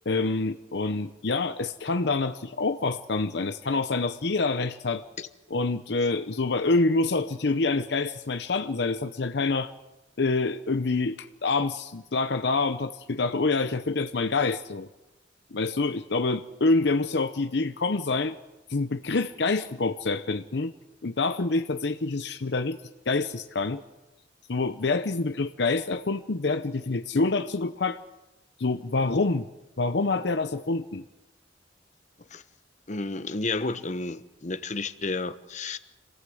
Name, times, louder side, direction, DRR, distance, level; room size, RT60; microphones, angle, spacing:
voice 1, 0.1-5.0 5.5-9.7 10.2-14.9 15.5-18.4 18.7-20.7 21.0-22.8 23.1-23.8 24.5-28.0 28.6-29.5 29.8-31.0, left 3 dB, 65° left, 9 dB, 0.8 m, -26 dB
voice 2, 32.9-35.8, left 3 dB, 40° left, 11 dB, 1.1 m, -31 dB
26.5 x 18.0 x 7.8 m, 1.0 s
head